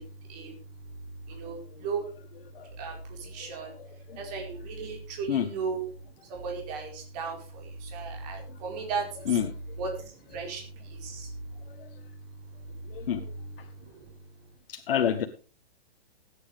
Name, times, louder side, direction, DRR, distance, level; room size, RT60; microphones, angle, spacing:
voice 1, 0.0-14.5, right 4 dB, 40° right, 2 dB, 4.5 m, -37 dB
voice 2, 12.9-13.2 14.7-15.3, left 9 dB, 65° left, 6 dB, 1.4 m, -27 dB
19.5 x 9.8 x 3.4 m, 0.35 s
hypercardioid pair, 150°, 30 cm